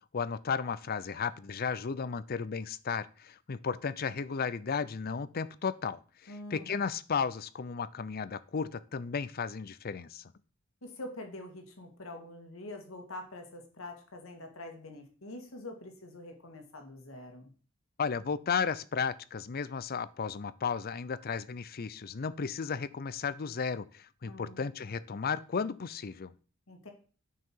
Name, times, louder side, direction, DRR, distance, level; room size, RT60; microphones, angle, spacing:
voice 1, 0.1-10.3 18.0-26.3, left 6 dB, 45° left, 17 dB, 0.5 m, -34 dB
voice 2, 6.3-6.8 10.8-17.5 24.2-24.6 26.7-26.9, left 1 dB, 70° left, 4 dB, 2.0 m, -45 dB
9.3 x 5.8 x 4.6 m, 0.39 s
head